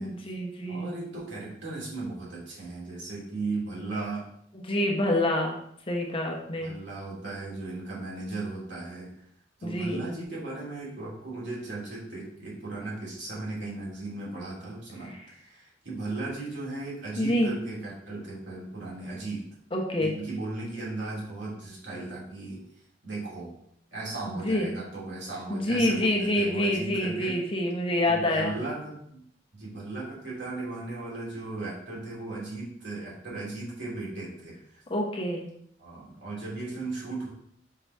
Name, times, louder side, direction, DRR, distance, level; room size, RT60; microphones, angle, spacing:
voice 1, 0.0-0.9 4.6-5.6 5.9-6.7 9.6-10.0 17.2-17.5 19.7-20.1 24.3-24.7 25.5-28.6 34.9-35.5, left 1 dB, 30° left, 1 dB, 0.9 m, -27 dB
voice 2, 0.7-4.3 6.6-9.1 9.6-19.5 20.0-22.6 23.0-23.5 23.9-27.4 28.1-29.2 29.5-34.8 35.8-37.3, right 2 dB, 75° right, -5 dB, 2.6 m, -36 dB
5.6 x 3.9 x 4.6 m, 0.70 s
head